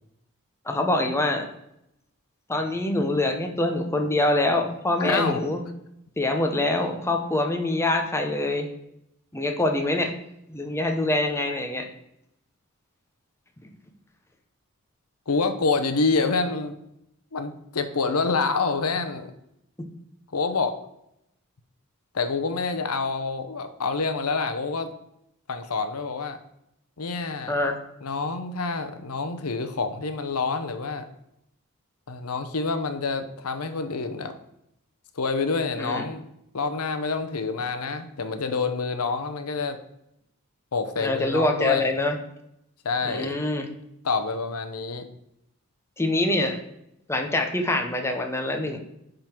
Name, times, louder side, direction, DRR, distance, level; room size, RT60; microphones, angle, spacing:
voice 1, 0.7-1.5 2.5-5.6 6.2-8.7 9.3-10.1 10.5-11.9 13.6-13.7 27.5-27.8 35.8-36.0 41.0-42.2 43.0-43.7 46.0-46.6 47.1-48.8, left 2 dB, 10° left, 4 dB, 0.9 m, -25 dB
voice 2, 5.0-5.4 15.3-16.8 17.3-19.3 20.3-20.7 22.1-24.9 25.5-26.4 27.0-27.6 28.0-31.0 32.1-34.3 35.2-36.2 36.5-39.8 40.7-41.9 42.8-43.3 44.0-45.1, left 4 dB, 80° left, 9 dB, 0.8 m, -27 dB
10.5 x 3.9 x 4.5 m, 0.80 s
head